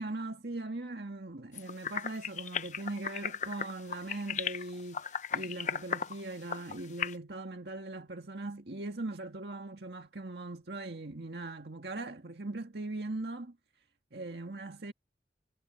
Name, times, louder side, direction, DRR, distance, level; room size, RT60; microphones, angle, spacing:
voice 1, 0.0-13.6 14.1-14.9, right 2 dB, 65° right, 1.8 m, -40 dB
sound 1, 1.5-7.1, left 7 dB, 40° left, 0.8 m, -36 dB
head